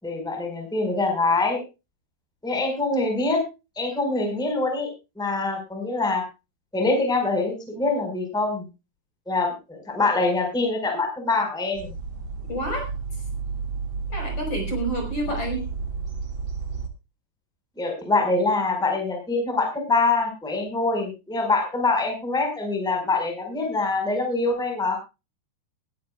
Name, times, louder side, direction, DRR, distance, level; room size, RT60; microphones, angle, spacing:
voice 1, 0.0-1.6 2.4-3.4 3.7-4.9 5.2-6.2 6.7-8.7 9.3-11.9 17.7-25.0, left 3 dB, ahead, 3 dB, 4.2 m, -24 dB
sound 1, 11.7-16.9, right 5 dB, 40° right, 2.1 m, -32 dB
voice 2, 12.5-12.9 14.1-15.7, right 1 dB, 35° left, 3 dB, 5.5 m, -29 dB
21.0 x 13.0 x 2.3 m, 0.28 s
omnidirectional pair, 4.7 m